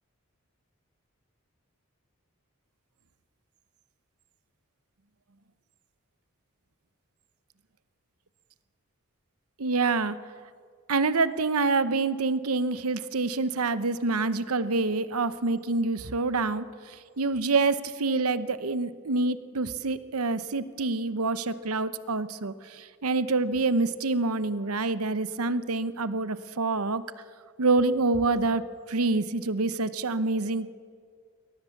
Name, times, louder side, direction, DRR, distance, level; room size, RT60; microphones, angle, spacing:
voice 1, 9.6-10.2 10.9-27.0 27.6-28.6 28.9-30.7, right 3 dB, 90° right, 14 dB, 0.9 m, -27 dB
22.5 x 18.0 x 7.2 m, 2.1 s
head